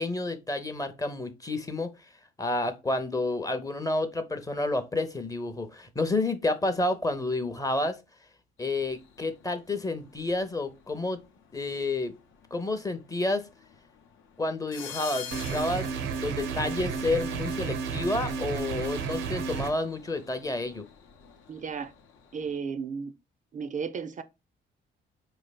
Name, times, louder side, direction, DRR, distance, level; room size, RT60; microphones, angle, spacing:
voice 1, 0.0-1.9 2.4-8.0 8.6-11.2 11.5-12.1 12.5-13.5 14.4-20.9, left 2 dB, 15° left, 0.6 m, -30 dB
sound 1, 8.6-22.6, left 7 dB, 75° left, 0.7 m, -49 dB
sound 2, 15.3-19.7, right 6 dB, 90° right, 0.7 m, -32 dB
voice 2, 21.5-21.9 22.3-23.1 23.5-24.2, right 6 dB, 40° right, 0.4 m, -34 dB
4.6 x 3.2 x 2.2 m
cardioid pair, 90°, 20 cm